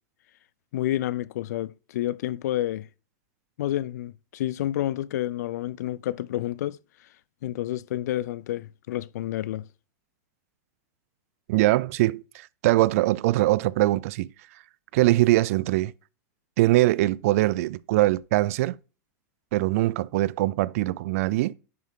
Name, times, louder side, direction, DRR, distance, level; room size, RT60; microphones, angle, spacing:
voice 1, 0.7-2.9 3.6-6.8 7.4-9.6, left 13 dB, 80° left, 0.4 m, -29 dB
voice 2, 11.5-14.3 14.9-15.9 16.6-18.8 19.5-21.6, right 17 dB, 60° right, 0.4 m, -22 dB
10.5 x 5.7 x 3.7 m
supercardioid pair, 155°, 9 cm